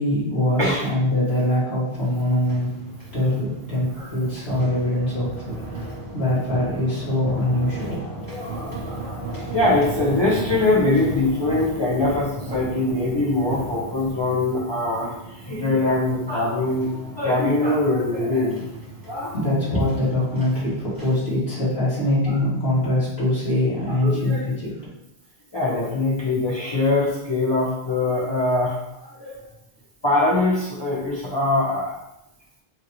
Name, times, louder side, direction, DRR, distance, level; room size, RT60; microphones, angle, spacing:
voice 1, 0.0-2.7 3.1-8.1 19.3-24.7, left 1 dB, 75° left, -8 dB, 2.0 m, -23 dB
sound 1, 2.0-21.2, right 1 dB, 25° right, 0.7 m, -43 dB
sound 2, 4.2-15.2, right 2 dB, 90° right, 1.1 m, -34 dB
voice 2, 8.3-16.9 17.2-18.6 19.1-19.3 19.7-19.8 22.3-22.4 23.9-24.4 25.5-29.4 30.0-32.0, left 2 dB, 30° left, -6 dB, 0.7 m, -23 dB
4.9 x 2.8 x 3.1 m, 0.85 s
omnidirectional pair, 1.1 m